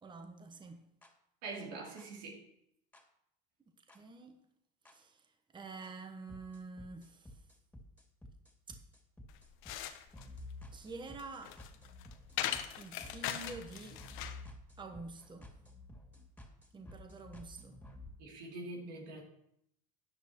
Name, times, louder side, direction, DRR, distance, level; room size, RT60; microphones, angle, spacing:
voice 1, 0.0-0.8 3.9-4.4 4.9-5.3 5.5-7.4 8.7-8.8 10.7-11.6 12.8-14.0 14.8-15.5 16.7-17.8, right 3 dB, 20° right, 1.1 m, -48 dB
sound 1, 1.0-1.1 2.0-2.1 2.9-3.0 3.9-4.0 4.9-5.0 5.8-5.9 6.3-18.1, left 2 dB, 5° left, 2.6 m, -52 dB
voice 2, 1.4-2.4 18.2-19.2, right 3 dB, 80° right, 3.1 m, -44 dB
sound 2, 9.3-14.5, left 11 dB, 65° left, 1.0 m, -41 dB
13.0 x 9.5 x 3.1 m
supercardioid pair, 85°, 21 cm